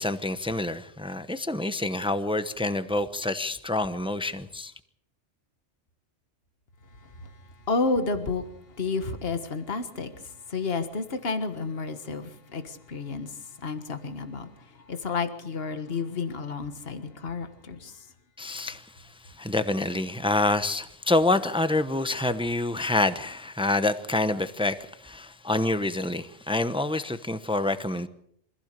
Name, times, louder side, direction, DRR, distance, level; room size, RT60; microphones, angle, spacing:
voice 1, 0.0-4.7 18.4-18.8 19.4-28.1, left 2 dB, 5° right, 0.8 m, -27 dB
voice 2, 7.7-8.4 8.8-10.1 10.5-13.3 13.6-14.5 14.9-17.9, left 4 dB, 55° left, 1.8 m, -30 dB
25.0 x 16.0 x 6.8 m
omnidirectional pair, 1.2 m